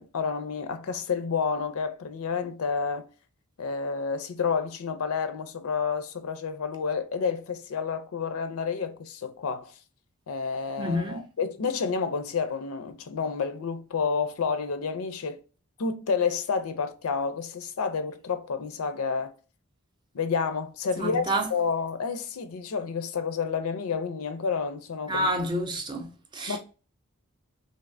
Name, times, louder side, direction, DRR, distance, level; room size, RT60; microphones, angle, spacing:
voice 1, 0.0-3.1 3.6-9.7 10.3-15.4 15.8-19.3 20.1-25.3 26.5-26.6, left 5 dB, 80° left, 0.5 m, -30 dB
voice 2, 10.8-11.2 21.0-21.5 25.1-26.6, equal, 20° right, 0.5 m, -29 dB
3.2 x 2.7 x 2.5 m
head